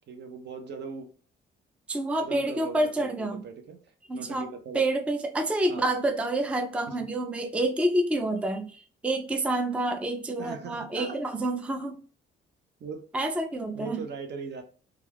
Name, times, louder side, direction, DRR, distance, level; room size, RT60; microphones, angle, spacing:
voice 1, 0.1-1.1 2.2-3.8 4.1-4.8 5.7-5.8 6.9-7.0 10.4-11.2 12.8-13.0 13.7-14.6, right 5 dB, 60° right, 5 dB, 0.6 m, -39 dB
voice 2, 1.9-3.4 4.1-4.5 4.7-12.0 13.1-14.0, right 1 dB, 5° right, 5 dB, 0.3 m, -28 dB
2.3 x 2.3 x 3.2 m, 0.41 s
cardioid pair, 90°, 20 cm